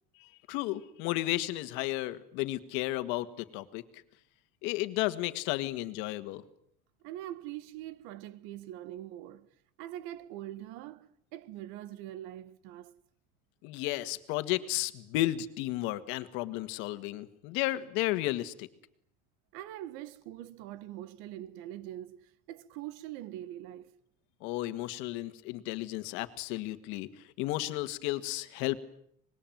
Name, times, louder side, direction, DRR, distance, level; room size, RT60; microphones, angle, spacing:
voice 1, 0.2-4.0 4.6-6.4 13.6-18.7 24.4-28.8, left 17 dB, 65° left, 1.8 m, -33 dB
voice 2, 7.0-9.5 9.8-12.9 19.5-23.9, right 13 dB, 70° right, 1.5 m, -43 dB
25.5 x 21.5 x 9.3 m
cardioid pair, 180°, 21 cm